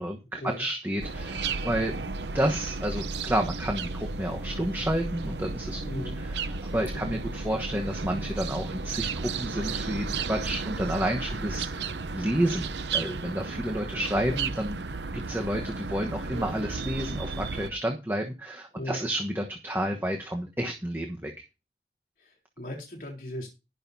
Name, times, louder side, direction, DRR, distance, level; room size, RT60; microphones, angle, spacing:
voice 1, 0.0-1.9 2.3-14.8 15.1-21.3, right 1 dB, 10° right, 2 dB, 1.2 m, -30 dB
sound 1, 1.0-17.7, right 4 dB, 85° right, 0.8 m, -33 dB
voice 2, 5.8-6.2 6.9-7.2 14.2-14.4 18.7-19.0 22.2-23.5, left 1 dB, 50° left, -2 dB, 3.8 m, -38 dB
19.5 x 6.6 x 2.8 m, 0.27 s
head